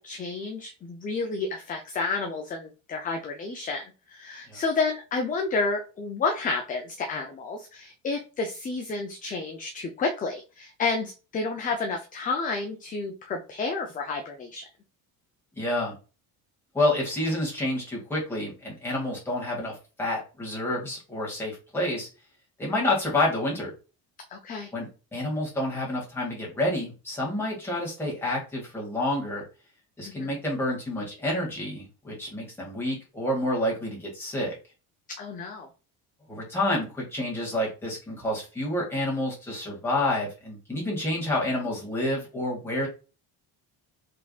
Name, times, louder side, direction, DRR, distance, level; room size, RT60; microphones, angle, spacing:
voice 1, 0.0-14.7 24.3-24.7 30.0-30.4 35.2-35.7, left 4 dB, 20° left, 3 dB, 0.5 m, -30 dB
voice 2, 15.6-15.9 16.7-22.1 22.6-23.7 24.7-29.4 30.0-34.6 36.3-42.9, left 1 dB, 5° left, -5 dB, 2.1 m, -29 dB
4.7 x 3.6 x 2.3 m, 0.32 s
cardioid pair, 170°, 37 cm